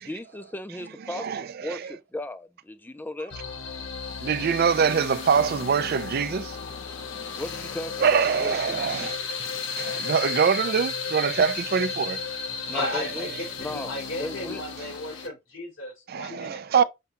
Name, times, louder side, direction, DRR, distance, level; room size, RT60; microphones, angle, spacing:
voice 1, 0.0-3.4 7.4-9.2 12.7-13.3 13.6-14.6, left 1 dB, 10° left, 0.5 m, -36 dB
sound 1, 3.3-15.3, left 5 dB, 70° left, 1.0 m, -34 dB
voice 2, 4.2-6.5 8.0-9.2 9.8-12.2 12.8-12.9 16.1-16.8, right 6 dB, 50° right, 0.4 m, -24 dB
voice 3, 12.7-16.9, left 2 dB, 90° left, 3.0 m, -35 dB
6.7 x 2.3 x 2.8 m
head